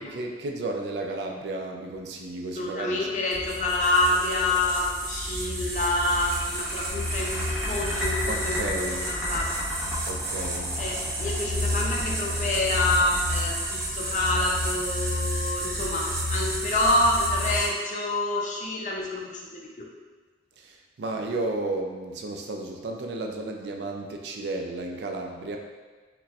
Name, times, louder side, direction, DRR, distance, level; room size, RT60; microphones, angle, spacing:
voice 1, 0.0-3.1 8.2-9.0 10.1-10.8 20.6-25.6, right 2 dB, 70° right, 2 dB, 0.4 m, -33 dB
voice 2, 2.6-9.6 10.8-19.4 19.8-19.9, left 2 dB, 45° left, -2 dB, 0.4 m, -27 dB
sound 1, 3.3-17.7, equal, 55° right, 0.8 m, -30 dB
sound 2, 5.9-14.4, left 1 dB, 5° right, 0.8 m, -35 dB
4.0 x 2.2 x 2.4 m, 1.4 s
head